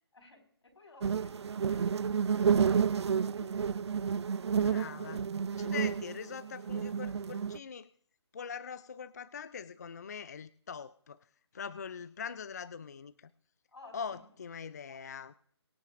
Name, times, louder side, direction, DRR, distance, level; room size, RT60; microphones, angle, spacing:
voice 1, 0.1-3.1 4.5-5.2 13.7-14.2, left 3 dB, 80° left, 1 dB, 5.1 m, -57 dB
sound 1, 1.0-7.6, right 7 dB, 75° right, 0.4 m, -30 dB
voice 2, 4.6-5.2 5.6-7.9 8.3-11.2 11.5-13.3 13.9-15.3, left 6 dB, 35° left, 15 dB, 0.4 m, -42 dB
23.5 x 9.1 x 2.5 m, 0.62 s
hypercardioid pair, 165°, 14 cm